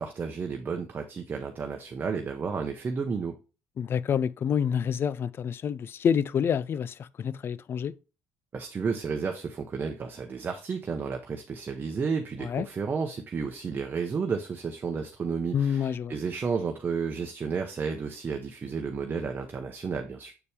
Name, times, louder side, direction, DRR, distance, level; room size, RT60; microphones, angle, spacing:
voice 1, 0.0-3.3 8.5-20.3, right 5 dB, 35° right, 0.8 m, -32 dB
voice 2, 3.8-7.9 12.4-12.7 15.5-16.1, left 7 dB, 45° left, 0.4 m, -28 dB
6.9 x 4.3 x 3.3 m
supercardioid pair, 95°, 6 cm